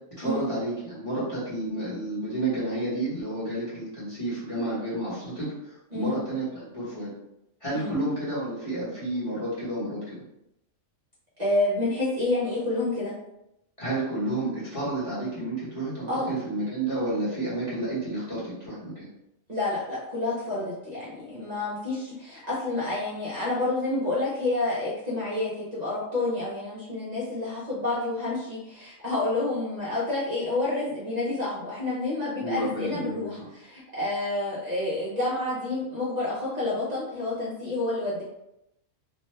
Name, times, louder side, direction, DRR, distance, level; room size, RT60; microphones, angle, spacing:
voice 1, 0.2-7.1 7.6-10.2 13.8-19.1 32.4-33.4, right 2 dB, 30° left, -9 dB, 1.1 m, -30 dB
voice 2, 11.4-13.1 16.1-16.3 19.5-38.2, left 2 dB, 40° right, -9 dB, 0.7 m, -29 dB
2.6 x 2.2 x 3.2 m, 0.85 s
omnidirectional pair, 1.3 m